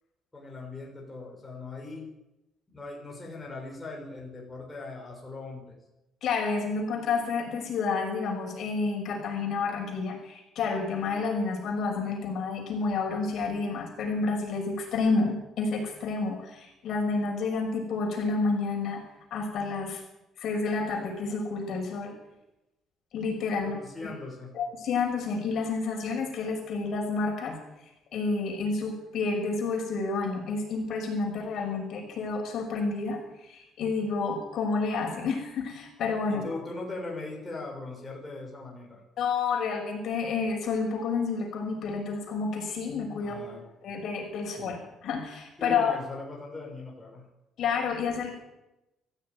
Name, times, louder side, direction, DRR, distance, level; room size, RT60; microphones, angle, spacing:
voice 1, 0.3-2.1 2.7-5.8 23.6-24.5 36.3-39.0 43.2-43.6 44.6-44.8 45.6-47.3, left 3 dB, 10° left, -2 dB, 6.4 m, -40 dB
voice 2, 6.2-19.0 19.3-20.0 20.4-22.2 23.1-23.7 24.5-27.6 28.1-36.4 39.2-43.5 43.8-45.9 47.6-48.3, left 4 dB, 50° left, 2 dB, 5.9 m, -30 dB
23.5 x 15.0 x 9.6 m, 0.94 s
cardioid pair, 180°, 0 cm